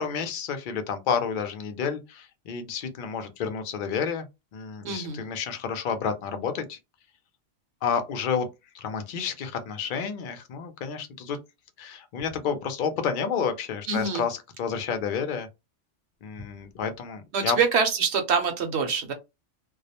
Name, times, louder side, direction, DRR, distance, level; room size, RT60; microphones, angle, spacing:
voice 1, 0.0-4.2 4.5-6.8 7.8-8.5 8.7-11.4 11.8-15.5 16.2-17.6, left 6 dB, 60° left, 0.5 m, -30 dB
voice 2, 4.8-5.2 13.9-14.2 17.3-19.1, right 5 dB, 65° right, 0.9 m, -25 dB
2.3 x 2.0 x 2.7 m
omnidirectional pair, 1.2 m